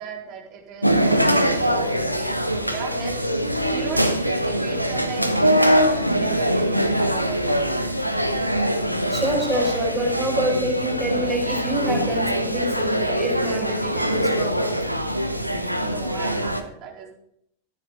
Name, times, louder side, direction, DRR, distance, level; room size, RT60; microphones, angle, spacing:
voice 1, 0.0-3.3 3.7-7.8 15.7-17.2, right 7 dB, 40° right, 0 dB, 4.1 m, -37 dB
sound 1, 0.8-16.6, equal, 90° right, 1.2 m, -23 dB
voice 2, 9.1-14.9, equal, 5° right, -2 dB, 5.0 m, -26 dB
14.5 x 10.5 x 5.1 m, 0.72 s
figure-of-eight pair, 90°, 0 cm